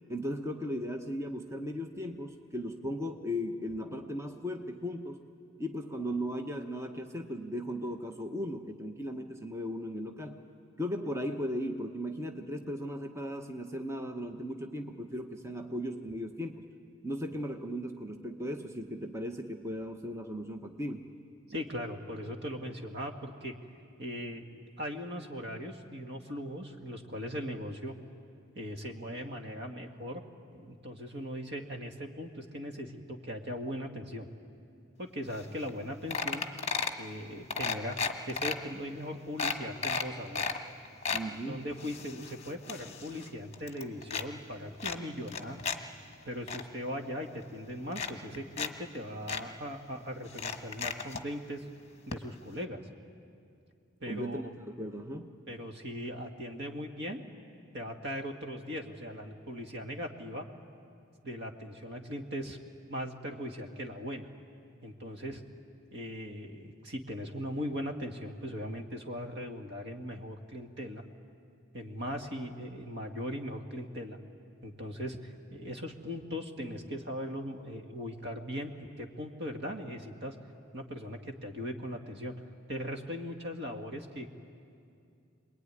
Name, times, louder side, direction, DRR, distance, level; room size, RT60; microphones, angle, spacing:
voice 1, 0.1-5.2 5.6-10.4 10.8-16.6 17.0-21.1 41.1-41.7 54.1-55.3, equal, 15° right, 4 dB, 1.0 m, -37 dB
voice 2, 21.5-23.5 24.0-27.9 28.6-30.2 30.5-34.3 35.0-36.4 37.0-38.0 38.3-40.5 41.5-45.6 46.3-51.6 52.1-52.8 54.0-54.5 55.5-57.2 57.7-60.5 61.2-62.6 62.9-64.3 64.8-65.4 65.9-71.0 71.7-74.2 74.6-80.4 80.7-82.3 82.7-84.3, equal, 60° right, 3 dB, 2.0 m, -39 dB
sound 1, 35.4-35.5 35.7-35.8 36.1-37.0 37.5-38.5 39.0-39.1 39.4-40.6 40.8-41.3 41.8-43.3 43.5-44.3 44.8-45.8 46.1-46.6 47.4-47.5 47.9-48.7 48.9-49.0 49.3-49.4 50.3-51.2 52.1-52.2 52.5-52.6, left 5 dB, 35° left, 1.4 m, -34 dB
26.5 x 21.0 x 9.8 m, 2.5 s
head